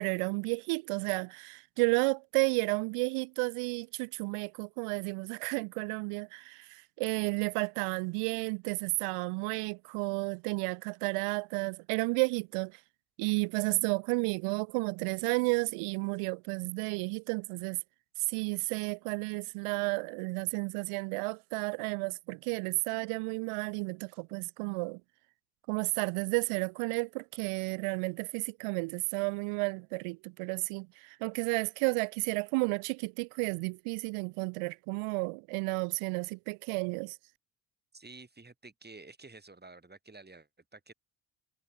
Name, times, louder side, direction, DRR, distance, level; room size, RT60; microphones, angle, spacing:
voice 1, 0.0-12.8 13.2-17.8 18.3-25.0 25.7-37.2, right 28 dB, 85° right, 0.6 m, -32 dB
voice 2, 37.9-40.9, right 3 dB, 20° right, 4.6 m, -51 dB
supercardioid pair, 75°, 50 cm